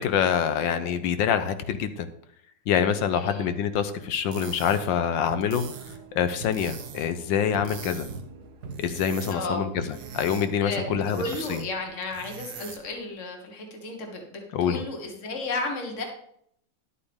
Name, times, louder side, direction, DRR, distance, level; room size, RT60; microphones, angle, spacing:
voice 1, 0.0-2.1 2.7-5.6 6.1-8.1 8.8-11.2 11.5-11.6 14.5-14.8, left 8 dB, 80° left, 10 dB, 1.5 m, -25 dB
voice 2, 3.1-3.5 9.3-9.7 10.6-16.1, left 2 dB, 40° left, 2 dB, 1.9 m, -33 dB
sound 1, 4.1-13.0, right 7 dB, 90° right, 1.8 m, -44 dB
sound 2, 5.0-11.5, right 4 dB, 60° right, 1.3 m, -43 dB
11.0 x 8.4 x 3.6 m, 0.68 s
omnidirectional pair, 2.0 m